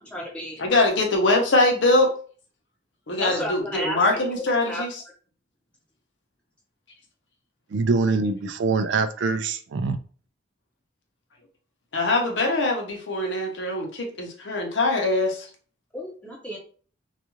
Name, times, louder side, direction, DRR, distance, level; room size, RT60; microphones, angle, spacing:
voice 1, 0.0-0.6 3.2-4.0 4.7-4.8 15.9-16.6, equal, 5° left, 0.8 m, -32 dB
voice 2, 0.6-2.1 3.1-4.9 11.9-15.5, left 2 dB, 75° left, 0.7 m, -22 dB
voice 3, 7.7-10.0, right 4 dB, 75° right, 0.4 m, -24 dB
2.4 x 2.3 x 3.0 m
head